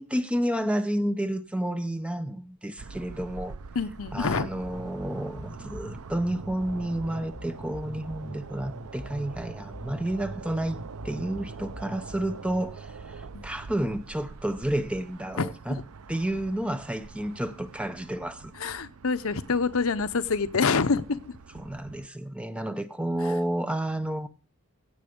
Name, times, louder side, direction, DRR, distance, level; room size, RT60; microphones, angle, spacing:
voice 1, 0.0-3.6 4.1-10.8 11.0-15.8 16.1-18.5 21.5-24.3, right 1 dB, 5° right, 0.7 m, -30 dB
sound 1, 2.8-22.1, right 4 dB, 75° right, 0.6 m, -44 dB
voice 2, 3.7-4.6 13.3-13.4 15.4-15.5 18.6-21.4, left 4 dB, 65° left, 0.7 m, -26 dB
sound 2, 4.6-12.6, equal, 35° right, 1.3 m, -43 dB
16.0 x 7.1 x 5.2 m
head